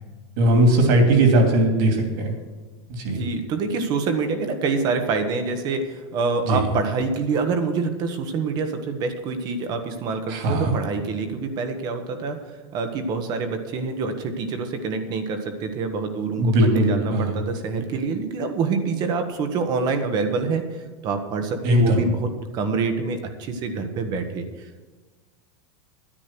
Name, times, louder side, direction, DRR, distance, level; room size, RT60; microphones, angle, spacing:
voice 1, 0.4-2.3 2.9-3.2 6.5-6.6 10.3-10.7 16.4-17.3 21.6-22.0, right 1 dB, 50° right, 3 dB, 2.8 m, -19 dB
voice 2, 3.1-12.4 12.7-24.9, right 4 dB, 30° right, 7 dB, 1.2 m, -26 dB
10.5 x 10.0 x 6.1 m, 1.3 s
supercardioid pair, 170°, 14 cm